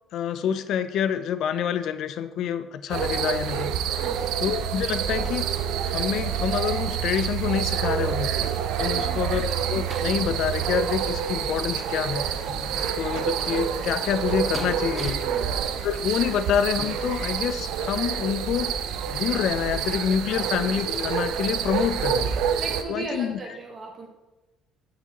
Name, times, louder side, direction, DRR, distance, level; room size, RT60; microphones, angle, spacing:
voice 1, 0.1-3.7 4.4-5.5 5.8-8.3 8.8-12.3 12.7-15.2 15.8-18.7 19.1-22.3 22.9-23.4, left 8 dB, 65° left, 12 dB, 0.4 m, -27 dB
sound 1, 2.9-22.8, right 8 dB, 75° right, 0.6 m, -27 dB
voice 2, 3.9-4.3 8.9-9.4 15.3-15.5 20.3-20.5 22.6-24.1, right 3 dB, 40° right, 1 dB, 1.2 m, -37 dB
sound 2, 9.3-18.1 18.7-18.8 19.2-19.3, left 1 dB, ahead, 1.1 m, -46 dB
11.5 x 4.9 x 2.9 m, 1.1 s
cardioid pair, 95°, 0 cm